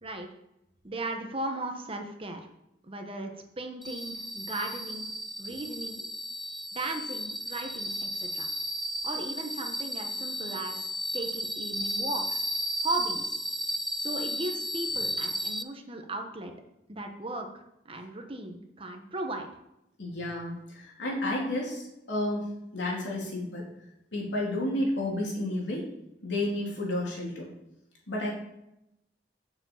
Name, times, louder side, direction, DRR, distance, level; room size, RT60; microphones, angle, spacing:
voice 1, 0.8-2.5 2.8-5.1 5.4-6.1 6.7-8.5 9.0-12.4 12.8-13.3 14.0-16.5 16.9-19.5, right 2 dB, 30° right, 4 dB, 1.1 m, -36 dB
sound 1, 3.8-15.6, equal, ahead, 0.4 m, -34 dB
voice 2, 20.0-22.5 22.7-23.7 24.1-25.9 26.2-27.5 28.1-28.3, left 1 dB, 85° left, -3 dB, 3.4 m, -31 dB
7.3 x 6.5 x 7.2 m, 0.84 s
head